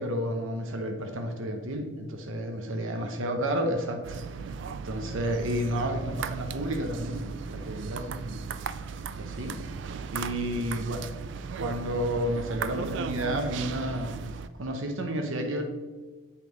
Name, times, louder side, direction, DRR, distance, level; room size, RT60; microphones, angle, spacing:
voice 1, 0.0-4.2 4.5-4.6 4.8-8.5 9.2-9.6 10.1-11.1 11.6-14.2 14.6-15.6, equal, 85° right, 4 dB, 0.8 m, -31 dB
sound 1, 4.0-14.5, right 6 dB, 65° right, 0.3 m, -37 dB
8.2 x 5.3 x 3.1 m, 1.3 s
head